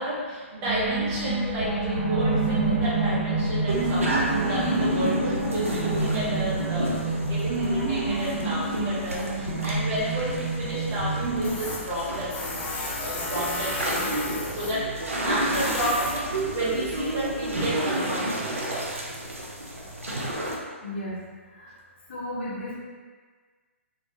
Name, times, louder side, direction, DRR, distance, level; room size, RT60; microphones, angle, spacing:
voice 1, 0.0-12.6 13.0-14.9 15.2-16.2 16.5-18.5 19.1-19.2, right 1 dB, 25° right, -9 dB, 1.1 m, -31 dB
sound 1, 0.6-11.5, right 2 dB, 85° left, 1.1 m, -27 dB
sound 2, 3.7-20.6, right 1 dB, 75° right, 0.5 m, -32 dB
Tools, 11.4-17.6, left 2 dB, 15° left, 0.4 m, -35 dB
voice 2, 20.8-21.2 21.6-21.7 22.1-22.8, left 1 dB, 50° left, -7 dB, 1.0 m, -33 dB
2.6 x 2.5 x 2.7 m, 1.5 s
figure-of-eight pair, 120°, 7 cm